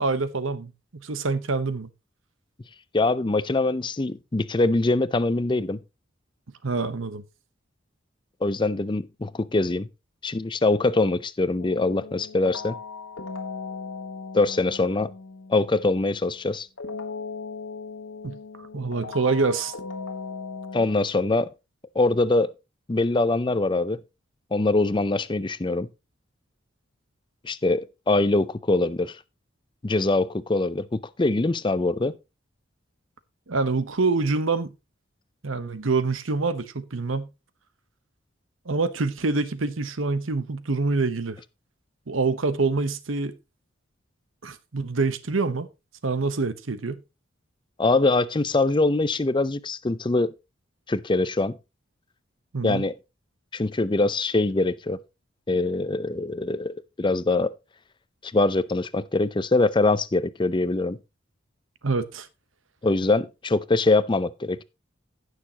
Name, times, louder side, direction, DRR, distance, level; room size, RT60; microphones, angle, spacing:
voice 1, 0.0-1.9 6.6-7.2 18.2-19.7 33.5-34.7 35.4-37.3 38.7-41.4 42.1-43.4 44.4-45.7 46.0-47.0 52.5-52.8 61.8-62.3, right 3 dB, 85° right, 1.0 m, -26 dB
voice 2, 2.9-5.8 8.4-9.9 10.2-12.8 14.3-15.1 15.5-16.7 20.7-21.5 22.0-22.5 22.9-24.0 24.5-25.9 27.4-29.2 29.8-32.2 47.8-50.3 50.9-51.6 52.6-52.9 53.5-55.0 55.5-57.5 58.2-61.0 62.8-64.6, left 2 dB, 25° left, 0.5 m, -23 dB
sound 1, 11.6-16.2 16.8-20.8, left 4 dB, 80° left, 1.4 m, -38 dB
16.0 x 6.6 x 2.9 m
head